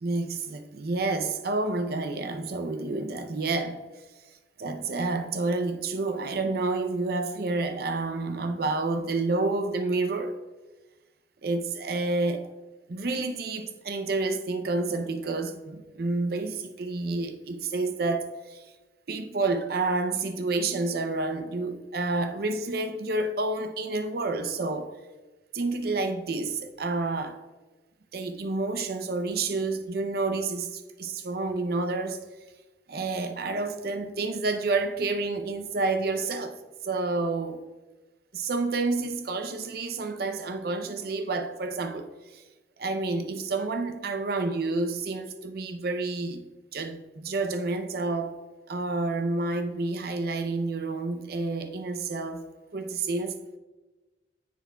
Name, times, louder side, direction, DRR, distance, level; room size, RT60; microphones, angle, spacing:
voice 1, 0.0-3.8 4.6-10.4 11.4-12.5 12.9-18.6 19.1-24.9 25.5-27.4 28.1-32.2 32.9-36.6 36.8-37.6 38.3-42.4 42.8-48.3 48.7-52.4 52.7-53.6, right 3 dB, 55° right, 0.6 m, -29 dB
10.0 x 6.9 x 2.3 m
head